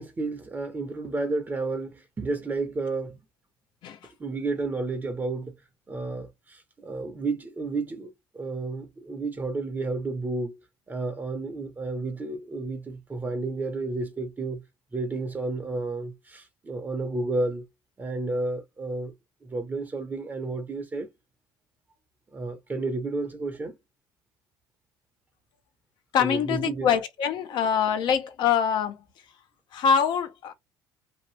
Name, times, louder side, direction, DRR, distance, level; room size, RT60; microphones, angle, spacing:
voice 1, 0.0-3.2 4.2-5.6 5.9-10.6 10.9-14.6 14.9-17.6 18.0-19.1 19.4-21.1 22.3-23.8 26.2-26.9 27.5-27.6, right 3 dB, 20° right, 0.7 m, -31 dB
voice 2, 26.1-29.0 29.7-30.5, left 7 dB, 65° left, 0.8 m, -24 dB
2.8 x 2.5 x 3.1 m
supercardioid pair, 95°, 9 cm